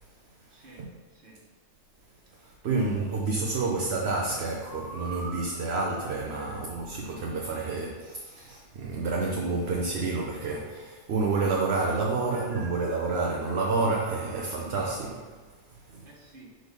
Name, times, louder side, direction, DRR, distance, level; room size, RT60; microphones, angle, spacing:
voice 1, 0.5-1.4 3.0-3.8 16.0-16.6, right 2 dB, 50° right, -3 dB, 1.6 m, -52 dB
voice 2, 2.3-15.3 15.9-16.1, right 3 dB, 65° right, -1 dB, 1.0 m, -29 dB
sound 1, 4.7-6.7 12.3-15.0, right 3 dB, 90° right, 1.6 m, -45 dB
6.2 x 4.0 x 5.2 m, 1.4 s
omnidirectional pair, 1.2 m